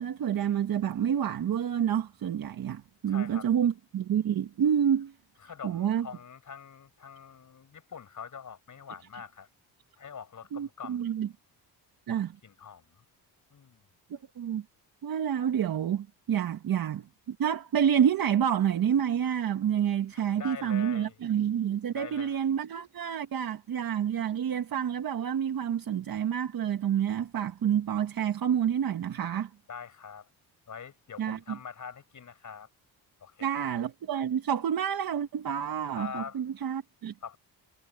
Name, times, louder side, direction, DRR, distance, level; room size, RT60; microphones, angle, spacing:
voice 1, 0.0-5.1 5.6-6.1 10.5-11.3 12.1-12.4 14.1-14.6 15.0-29.5 31.2-31.6 33.4-37.1, right 9 dB, 55° right, 1.5 m, -28 dB
voice 2, 3.1-3.5 5.4-9.5 10.0-11.1 12.4-13.0 13.5-13.8 20.1-21.2 21.9-22.4 29.7-30.3 30.7-32.7 33.2-33.7 36.0-36.4 37.2-37.4, left 7 dB, 45° left, 7.2 m, -44 dB
cardioid pair, 115°, 42 cm